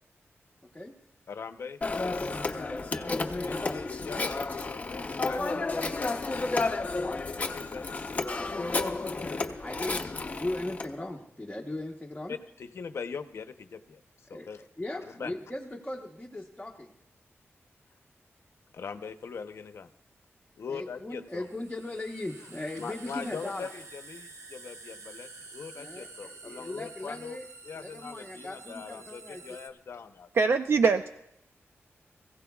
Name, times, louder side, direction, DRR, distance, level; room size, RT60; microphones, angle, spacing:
voice 1, 0.6-0.9 3.4-3.7 9.6-12.4 14.3-14.5 14.8-16.9 20.7-23.7 25.8-27.5 27.7-29.4, left 1 dB, 10° left, -2 dB, 1.0 m, -38 dB
voice 2, 1.3-1.8 3.4-6.8 7.2-8.1 12.3-14.0 14.3-14.6 15.1-15.3 18.7-19.9 20.6-21.5 22.8-27.4 27.6-30.3, left 6 dB, 65° left, 9 dB, 0.8 m, -41 dB
Telephone, 1.8-10.9, left 3 dB, 30° left, 0.7 m, -31 dB
sound 1, 19.2-19.3 21.3-29.7, right 3 dB, 90° right, 1.1 m, -49 dB
voice 3, 30.3-31.1, right 5 dB, 55° right, 7 dB, 0.5 m, -23 dB
25.0 x 16.0 x 2.3 m, 0.79 s
wide cardioid pair, 175°, 5 cm